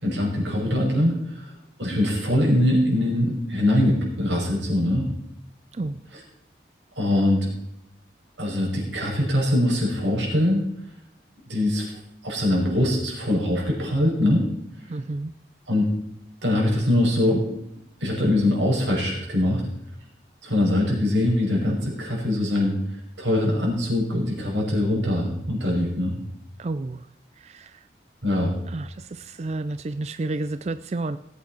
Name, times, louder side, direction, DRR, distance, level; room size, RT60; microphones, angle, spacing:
voice 1, 0.0-1.5 1.8-5.1 7.0-7.5 8.4-10.6 11.5-11.9 12.2-14.4 15.7-15.9 16.4-17.4 18.0-19.6 20.4-22.7 23.2-26.2 28.2-28.5, left 1 dB, 90° right, -2 dB, 5.7 m, -22 dB
voice 2, 14.9-15.3 26.6-27.1 27.4-27.8 28.7-31.2, right 2 dB, 35° right, 12 dB, 0.4 m, -31 dB
19.0 x 8.4 x 4.4 m, 0.78 s
head